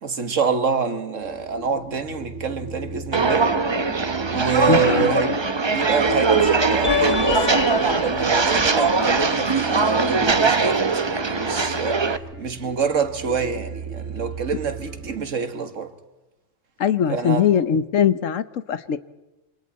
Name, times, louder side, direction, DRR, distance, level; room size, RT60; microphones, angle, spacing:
voice 1, 0.0-3.5 4.3-5.4 5.7-12.0 12.4-15.9 17.1-17.5, right 6 dB, 80° right, 1.9 m, -26 dB
sound 1, 1.2-15.2, right 4 dB, 50° right, 3.1 m, -37 dB
Walk footsteps, 3.1-12.2, right 4 dB, 25° right, 0.7 m, -21 dB
voice 2, 4.7-5.1 16.8-19.0, left 8 dB, 85° left, 1.3 m, -21 dB
sound 2, 4.8-5.9 6.4-9.8, left 6 dB, 40° left, 1.6 m, -29 dB
27.5 x 26.0 x 4.2 m
omnidirectional pair, 1.3 m